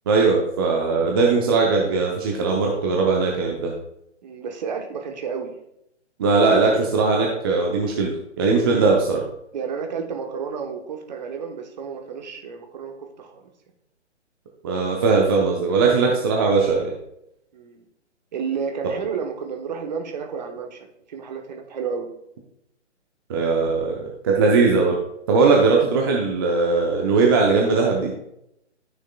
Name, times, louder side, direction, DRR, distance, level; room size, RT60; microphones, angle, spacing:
voice 1, 0.1-3.7 6.2-9.2 14.6-16.9 23.3-24.0 24.2-25.0 25.3-28.1, right 4 dB, 20° right, -1 dB, 0.6 m, -19 dB
voice 2, 4.2-5.5 6.4-6.8 8.6-8.9 9.5-13.5 17.5-17.8 18.3-22.1, right 6 dB, 35° right, 4 dB, 1.1 m, -31 dB
13.0 x 6.3 x 2.3 m, 0.80 s
figure-of-eight pair, 140°, 36 cm